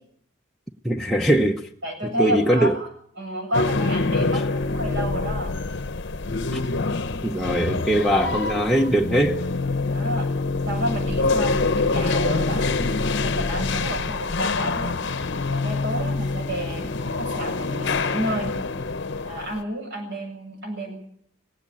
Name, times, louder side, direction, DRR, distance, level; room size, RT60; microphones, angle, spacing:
voice 1, 0.8-1.7 2.2-2.7 4.2-4.3 6.5-6.6 7.1-9.4, right 1 dB, ahead, 0.8 m, -21 dB
voice 2, 1.8-2.9 3.2-5.5 9.9-10.3 10.7-15.0 15.5-18.5 19.2-21.0, right 1 dB, 55° right, 8.0 m, -30 dB
sound 1, 3.5-19.6, left 3 dB, 55° left, 0.9 m, -25 dB
sound 2, 4.6-7.7, left 2 dB, 90° left, 0.7 m, -37 dB
18.5 x 16.0 x 9.1 m
head